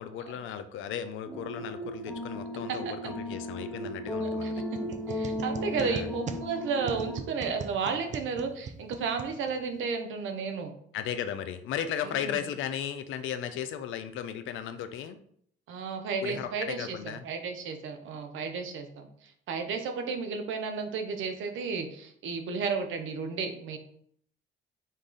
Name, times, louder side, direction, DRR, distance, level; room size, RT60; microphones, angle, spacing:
voice 1, 0.0-4.6 5.8-6.1 10.9-15.2 16.2-17.3, left 9 dB, 80° left, 10 dB, 0.5 m, -35 dB
sound 1, 1.3-7.2, equal, 5° left, 0.8 m, -35 dB
voice 2, 4.2-10.7 12.0-12.3 15.7-17.0 17.2-23.8, right 5 dB, 75° right, 6 dB, 0.8 m, -33 dB
sound 2, 4.7-9.8, right 5 dB, 40° right, 0.4 m, -41 dB
5.2 x 2.4 x 3.8 m, 0.66 s
cardioid pair, 90°, 20 cm